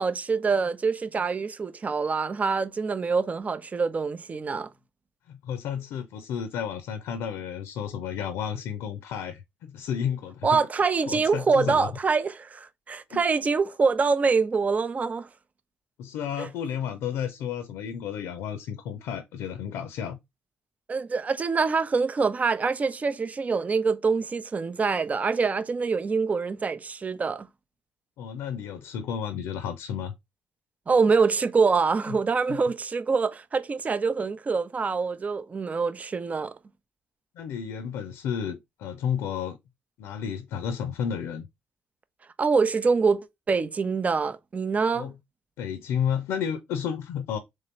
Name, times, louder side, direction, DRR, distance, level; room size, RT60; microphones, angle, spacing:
voice 1, 0.0-4.7 10.4-15.3 16.4-16.5 20.9-27.5 30.9-36.5 42.4-45.1, right 4 dB, 35° right, 0.7 m, -25 dB
voice 2, 5.3-10.6 11.1-11.9 13.1-13.2 16.0-20.2 28.2-30.1 32.1-32.2 32.5-32.6 37.4-39.6 40.0-41.5 44.9-45.1 45.6-47.4, left 8 dB, 80° left, 0.6 m, -32 dB
3.7 x 3.2 x 4.4 m
supercardioid pair, 60°, 4 cm